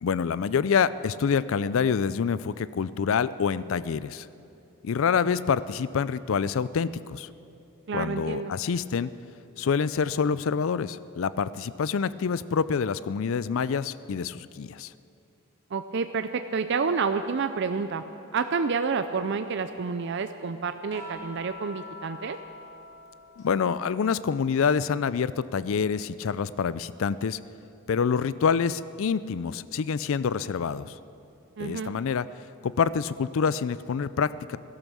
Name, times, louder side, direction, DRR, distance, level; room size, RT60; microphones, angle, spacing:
voice 1, 0.0-4.3 4.8-7.3 7.9-9.1 9.6-14.9 23.4-27.4 27.9-31.0 31.6-32.3 32.6-34.6, left 6 dB, 65° left, 17 dB, 0.4 m, -26 dB
voice 2, 7.9-8.5 15.7-18.0 18.3-22.4 31.6-31.9, right 5 dB, 55° right, 9 dB, 0.4 m, -29 dB
sound 1, 20.9-25.4 25.7-27.4 28.9-29.1, left 2 dB, 40° left, 3.9 m, -47 dB
16.0 x 12.5 x 6.2 m, 2.7 s
head